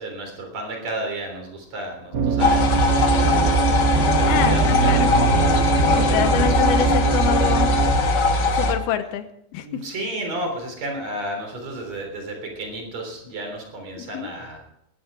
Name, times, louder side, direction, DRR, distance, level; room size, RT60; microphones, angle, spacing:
voice 1, 0.0-3.6 4.1-5.0 6.2-6.3 9.6-14.6, right 1 dB, 45° right, 2 dB, 4.6 m, -32 dB
sound 1, 2.1-7.9, right 4 dB, 75° right, 0.9 m, -22 dB
sound 2, 2.4-8.7, left 2 dB, 65° left, 1.1 m, -20 dB
voice 2, 4.2-5.1 6.0-7.7 8.5-9.3 9.5-9.8 14.0-14.3, left 10 dB, 90° left, 9 dB, 3.0 m, -26 dB
19.0 x 11.5 x 4.9 m, 0.78 s
omnidirectional pair, 4.3 m